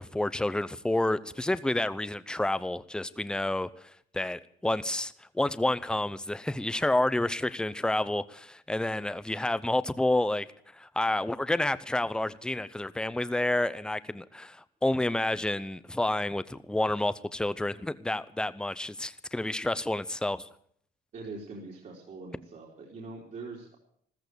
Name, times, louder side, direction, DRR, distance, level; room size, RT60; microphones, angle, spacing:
voice 1, 0.0-3.7 4.1-10.5 10.7-20.5, left 1 dB, 5° left, 15 dB, 0.7 m, -29 dB
voice 2, 21.1-23.8, right 3 dB, 50° right, -2 dB, 3.8 m, -43 dB
14.5 x 14.5 x 6.8 m, 0.64 s
cardioid pair, 110°, 17 cm